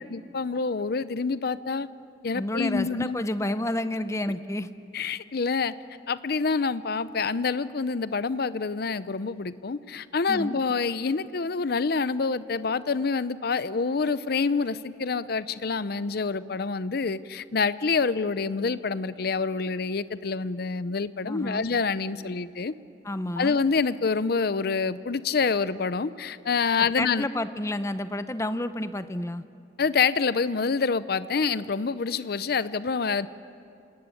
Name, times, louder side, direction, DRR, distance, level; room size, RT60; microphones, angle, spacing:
voice 1, 0.1-1.9 2.2-3.2 4.9-5.7 6.1-22.7 23.4-27.3 29.8-33.3, left 4 dB, 55° left, 15 dB, 0.6 m, -27 dB
voice 2, 2.3-4.7 10.3-10.6 21.2-21.7 23.0-23.6 26.9-29.4, left 1 dB, 15° left, 12 dB, 0.7 m, -30 dB
27.5 x 18.0 x 9.8 m, 2.6 s
head